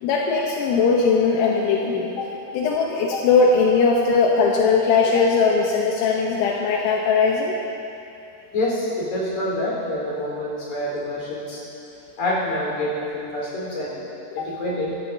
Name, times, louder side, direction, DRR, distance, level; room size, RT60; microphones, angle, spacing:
voice 1, 0.0-2.3 2.5-7.6 14.4-14.5, left 4 dB, 80° left, -2 dB, 3.3 m, -19 dB
voice 2, 8.5-11.6 12.2-14.0 14.3-14.9, left 1 dB, 40° left, -5 dB, 5.1 m, -26 dB
24.5 x 14.5 x 2.7 m, 2.8 s
omnidirectional pair, 5.4 m